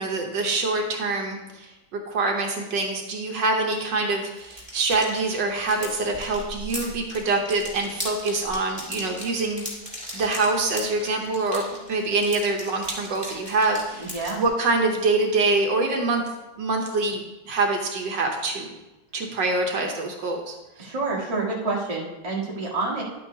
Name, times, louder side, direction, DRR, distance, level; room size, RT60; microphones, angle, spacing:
voice 1, 0.0-9.6 10.1-16.2 16.6-18.7 19.1-20.9, right 3 dB, 70° right, 2 dB, 1.6 m, -25 dB
sound 1, 4.3-14.5, equal, 5° left, 2.4 m, -38 dB
voice 2, 14.0-14.4 20.8-23.0, right 3 dB, 20° right, -4 dB, 1.5 m, -28 dB
11.0 x 8.6 x 2.8 m, 1.0 s
omnidirectional pair, 2.0 m